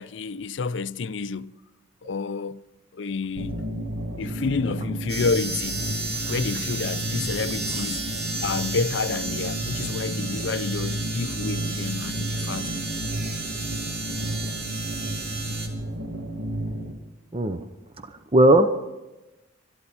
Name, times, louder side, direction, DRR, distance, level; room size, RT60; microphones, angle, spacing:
voice 1, 0.0-1.5 2.0-2.6 2.9-3.6 4.2-5.9 6.3-8.0 8.4-12.9, left 4 dB, 65° left, 0.5 m, -29 dB
sound 1, 3.4-16.9, right 1 dB, 85° right, 2.2 m, -32 dB
sound 2, 5.1-15.7, right 3 dB, 55° right, 2.4 m, -33 dB
voice 2, 17.3-17.6 18.0-18.7, right 1 dB, 30° right, 0.7 m, -18 dB
21.5 x 12.5 x 4.3 m
head